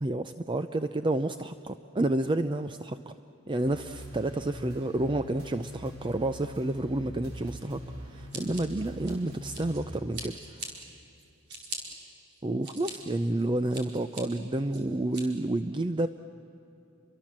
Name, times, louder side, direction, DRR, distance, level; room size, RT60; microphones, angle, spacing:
voice 1, 0.0-3.1 3.5-7.8 8.1-10.4 12.4-16.1, right 2 dB, 25° right, 10 dB, 0.5 m, -30 dB
sound 1, 3.6-10.0, equal, 85° right, 4.5 m, -42 dB
Scissors, 8.3-9.8 10.1-10.7 11.2-11.8 12.3-12.9 13.4-14.2 14.7-15.2, right 3 dB, 55° right, 4.4 m, -41 dB
30.0 x 23.5 x 7.5 m, 2.8 s
head